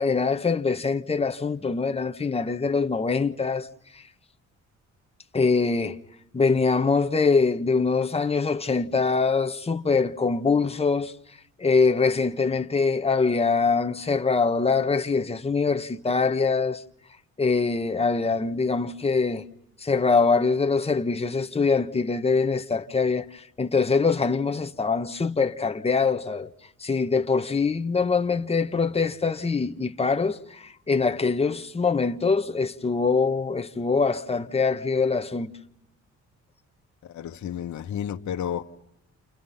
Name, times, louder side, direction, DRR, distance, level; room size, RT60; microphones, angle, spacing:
voice 1, 0.0-3.7 5.3-6.0 6.3-11.1 11.6-16.8 17.4-19.4 19.8-26.5 26.8-35.5, left 4 dB, 20° left, 1.4 m, -23 dB
voice 2, 37.0-38.6, left 9 dB, 70° left, 1.6 m, -31 dB
29.5 x 29.5 x 5.8 m
cardioid pair, 90°, 30 cm